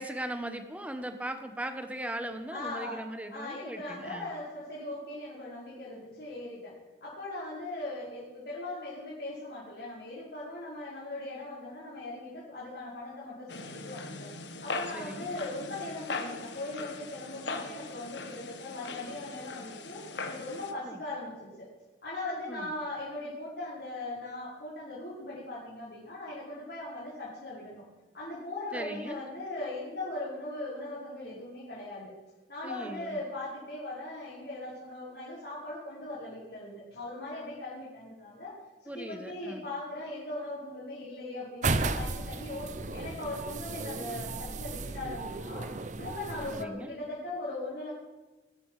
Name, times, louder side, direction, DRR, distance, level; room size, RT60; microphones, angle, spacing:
voice 1, 0.0-4.3 14.9-15.3 20.8-21.0 22.5-22.7 28.7-29.3 32.6-33.2 38.9-39.6 46.5-47.0, right 1 dB, 10° right, 7 dB, 1.2 m, -39 dB
voice 2, 2.5-3.0 3.3-6.8 7.0-14.3 14.6-21.7 22.0-27.9 28.1-32.1 32.5-38.6 38.9-45.7 46.0-47.9, left 2 dB, 65° left, -8 dB, 5.3 m, -39 dB
sound 1, 13.5-20.7, left 3 dB, 80° left, 1.5 m, -40 dB
sound 2, 41.6-46.7, right 3 dB, 40° right, 0.8 m, -34 dB
22.0 x 12.5 x 5.0 m, 1.2 s
head